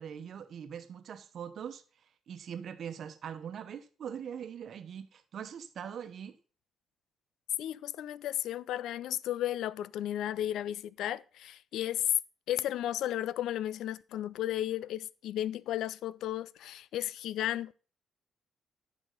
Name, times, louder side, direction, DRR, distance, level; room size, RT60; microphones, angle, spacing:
voice 1, 0.0-1.8 2.3-6.3, right 8 dB, 60° right, 1.0 m, -42 dB
voice 2, 7.6-12.2 12.5-17.7, left 12 dB, 80° left, 0.4 m, -34 dB
10.0 x 6.3 x 3.8 m
cardioid pair, 90°, 0 cm